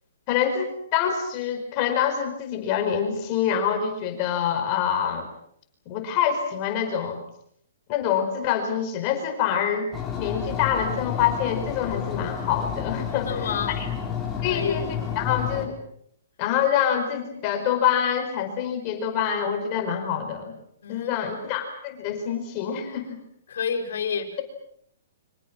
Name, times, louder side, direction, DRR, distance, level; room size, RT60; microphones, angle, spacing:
voice 1, 0.3-5.3 5.9-7.2 7.9-9.9 10.2-13.5 13.8-13.9 14.4-14.9 15.2-15.7 16.4-20.5 20.9-23.2, left 8 dB, 30° left, 5 dB, 4.8 m, -26 dB
sound 1, 9.9-15.7, left 8 dB, 10° left, 4.2 m, -31 dB
voice 2, 13.1-13.8 14.5-14.9 20.8-21.3 23.5-24.3, left 6 dB, 65° left, 6 dB, 5.2 m, -29 dB
29.5 x 25.5 x 6.1 m, 0.69 s
hypercardioid pair, 165°, 0 cm